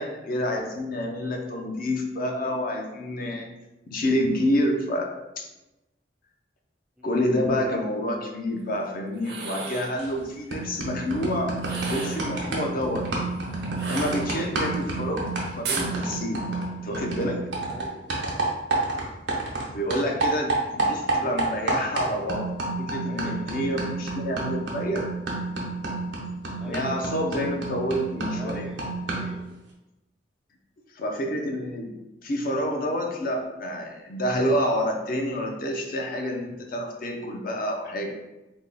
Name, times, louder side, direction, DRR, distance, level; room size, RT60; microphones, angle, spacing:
voice 1, 0.0-3.5 3.9-5.5 7.0-13.1 13.9-15.3 15.6-16.4 16.8-17.4 19.7-22.5 22.8-25.1 26.6-28.6 31.0-31.9 32.2-38.1, equal, 50° left, 2 dB, 0.6 m, -28 dB
sound 1, 9.2-10.0 11.6-12.3 13.8-14.7 15.6-15.9, right 4 dB, 65° right, 0.6 m, -33 dB
sound 2, 10.0-10.2 10.5-19.7 19.9-29.4, right 3 dB, 90° right, 0.8 m, -29 dB
voice 2, 17.7-18.5 23.0-23.5 26.6-27.0 28.3-28.8 29.1-29.5, equal, 5° right, -1 dB, 0.3 m, -42 dB
3.5 x 2.2 x 3.9 m, 0.99 s
head